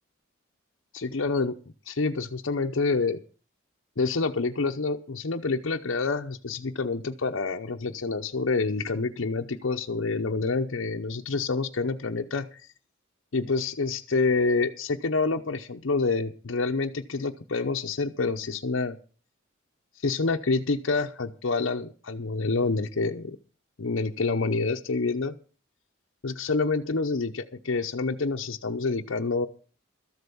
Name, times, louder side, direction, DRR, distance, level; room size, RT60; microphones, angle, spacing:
voice 1, 0.9-1.5 1.9-3.2 4.0-12.5 13.3-19.0 20.0-23.4 23.8-25.4 26.2-29.5, left 3 dB, 70° left, 3 dB, 0.7 m, -27 dB
13.5 x 8.0 x 6.9 m, 0.39 s
head